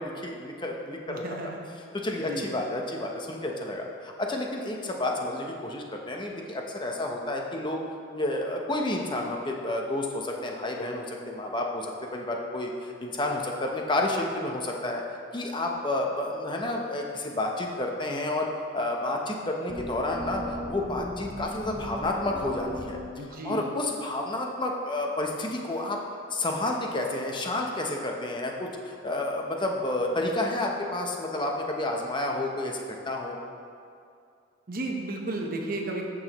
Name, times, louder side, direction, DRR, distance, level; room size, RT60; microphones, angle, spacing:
voice 1, 0.0-1.2 1.9-7.8 8.1-15.0 15.3-18.5 18.7-23.0 23.4-26.0 26.3-33.4, left 2 dB, 25° left, 1 dB, 0.8 m, -30 dB
voice 2, 1.1-1.6 2.2-2.5 23.2-23.7 34.7-36.0, right 2 dB, 45° right, 0 dB, 1.1 m, -33 dB
sound 1, 19.7-23.2, equal, 5° right, 2.2 m, -37 dB
14.0 x 6.2 x 3.0 m, 2.4 s
head